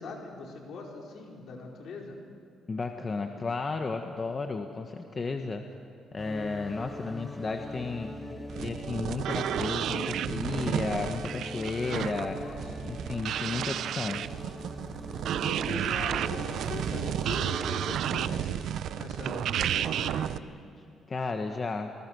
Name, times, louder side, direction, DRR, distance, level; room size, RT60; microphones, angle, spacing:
voice 1, 0.0-2.2 12.2-12.6 15.3-20.4, left 3 dB, 70° left, 0 dB, 4.9 m, -41 dB
voice 2, 2.7-5.6 6.1-8.1 8.6-12.4 12.8-14.2 21.1-21.9, left 4 dB, 35° left, 5 dB, 1.4 m, -33 dB
sound 1, 6.2-17.9, equal, 10° left, 1.8 m, -41 dB
sound 2, 8.5-20.4, right 10 dB, 75° right, 0.7 m, -32 dB
28.0 x 20.5 x 6.4 m, 2.6 s
cardioid pair, 90°, 0 cm